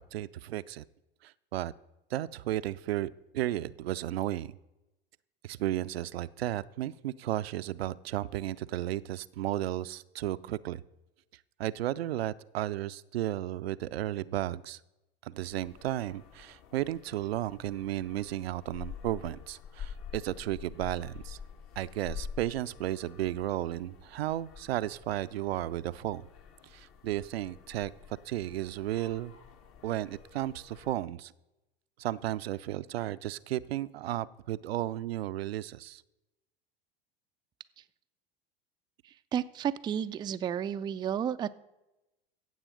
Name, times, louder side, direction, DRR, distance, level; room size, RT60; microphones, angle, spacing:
voice 1, 0.1-0.8 1.2-1.7 2.1-4.5 5.4-10.8 11.6-14.8 15.2-21.4 21.8-26.2 26.7-27.9 28.3-29.3 29.8-31.3 32.0-36.0, right 14 dB, 75° right, 15 dB, 0.5 m, -34 dB
sound 1, 15.4-30.9, left 7 dB, 45° left, 1.3 m, -48 dB
voice 2, 39.0-41.6, right 9 dB, 15° right, 11 dB, 0.3 m, -32 dB
15.5 x 7.4 x 5.0 m, 0.96 s
hypercardioid pair, 85°, 31 cm